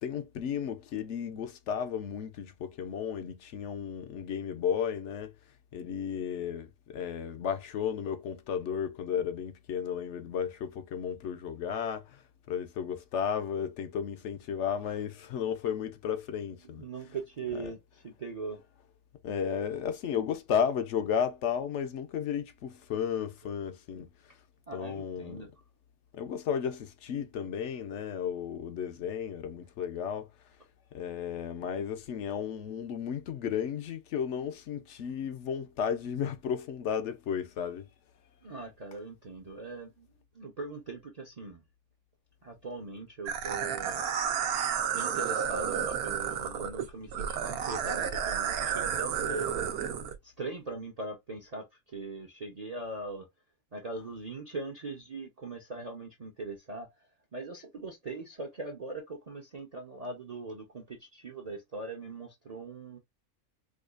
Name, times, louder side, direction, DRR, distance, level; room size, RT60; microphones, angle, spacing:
voice 1, 0.0-5.3 5.7-12.2 12.5-16.8 17.6-17.7 19.2-24.1 24.7-25.4 26.1-30.3 30.9-37.9, left 8 dB, 65° left, 0.8 m, -33 dB
voice 2, 16.6-18.6 24.7-25.5 38.4-40.1 40.3-41.6 42.4-44.0 44.9-49.5 50.2-53.3 53.7-57.1 57.3-63.0, right 3 dB, 40° right, 0.5 m, -40 dB
sound 1, 43.3-50.1, right 8 dB, 80° right, 1.1 m, -31 dB
4.8 x 2.3 x 2.3 m
omnidirectional pair, 1.5 m